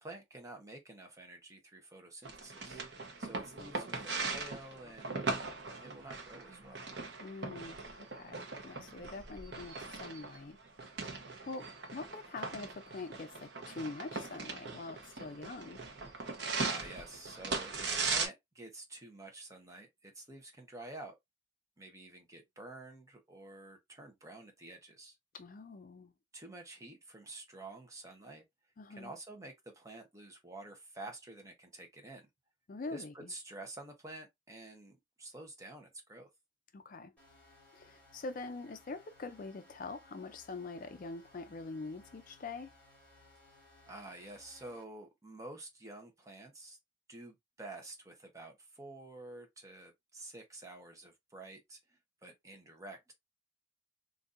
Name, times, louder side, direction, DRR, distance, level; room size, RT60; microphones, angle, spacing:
voice 1, 0.0-2.8 3.2-5.2 5.8-6.8 16.6-21.2 21.8-25.2 26.3-28.4 28.9-32.3 32.9-36.3 43.9-46.8 47.1-51.8 52.2-53.1, right 2 dB, 15° right, 0.8 m, -49 dB
sound 1, 2.2-18.3, right 4 dB, 60° right, 0.9 m, -39 dB
voice 2, 7.2-10.6 11.5-15.8 25.3-26.1 28.8-29.1 32.7-33.3 36.7-37.1 37.7-42.7, left 3 dB, 45° left, 0.4 m, -44 dB
sound 2, 37.2-44.8, left 2 dB, 5° left, 2.3 m, -62 dB
3.9 x 2.6 x 2.5 m
head